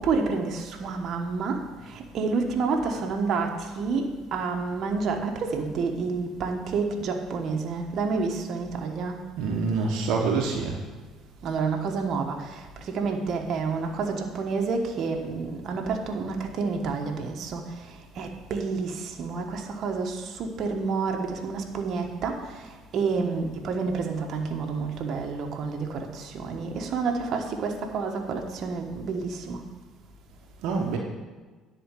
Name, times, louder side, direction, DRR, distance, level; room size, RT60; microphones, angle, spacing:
voice 1, 0.0-9.2 11.4-29.6, right 4 dB, 60° right, 3 dB, 1.3 m, -29 dB
voice 2, 9.4-10.8 30.6-31.0, right 4 dB, 75° right, 0 dB, 1.1 m, -26 dB
10.0 x 4.3 x 7.6 m, 1.3 s
supercardioid pair, 80°, 0 cm